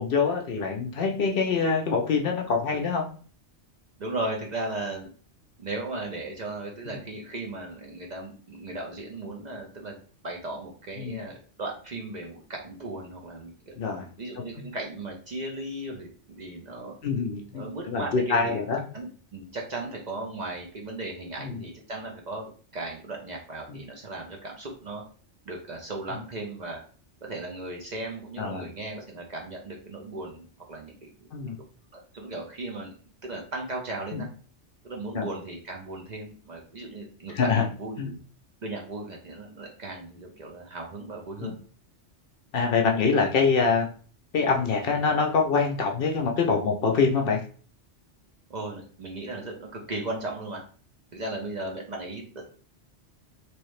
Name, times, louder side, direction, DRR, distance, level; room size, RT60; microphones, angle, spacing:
voice 1, 0.0-3.0 6.9-7.0 11.0-11.2 13.8-14.0 17.0-18.8 21.4-21.6 23.7-23.8 28.4-28.6 31.3-31.6 34.1-34.2 35.1-35.3 37.3-37.6 38.0-38.1 41.4-41.5 42.5-43.9 44.3-47.4, left 5 dB, 60° left, 2 dB, 0.7 m, -25 dB
voice 2, 4.0-5.1 5.6-10.0 10.2-13.7 14.2-17.0 17.5-18.6 18.9-25.0 25.5-26.8 27.2-31.1 31.6-31.7 31.9-32.9 33.2-34.3 34.8-38.2 38.6-41.6 48.5-50.6 51.1-52.4, right 2 dB, 45° right, 0 dB, 0.6 m, -36 dB
3.1 x 2.7 x 3.1 m, 0.42 s
omnidirectional pair, 1.2 m